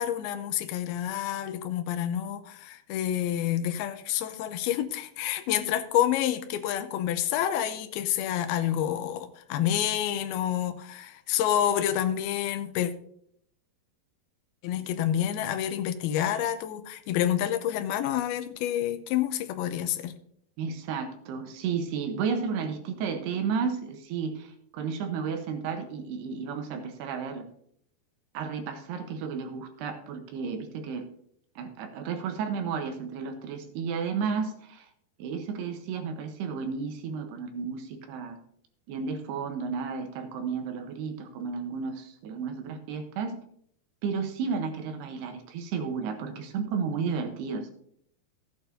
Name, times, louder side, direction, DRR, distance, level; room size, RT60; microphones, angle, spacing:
voice 1, 0.0-12.9 14.6-20.1, left 11 dB, 80° left, 9 dB, 2.4 m, -28 dB
voice 2, 20.6-27.5 28.3-31.0 31.6-34.9 35.2-38.4 38.9-43.4 44.0-47.7, right 6 dB, 80° right, 6 dB, 3.0 m, -32 dB
15.0 x 8.8 x 2.6 m, 0.68 s
omnidirectional pair, 4.8 m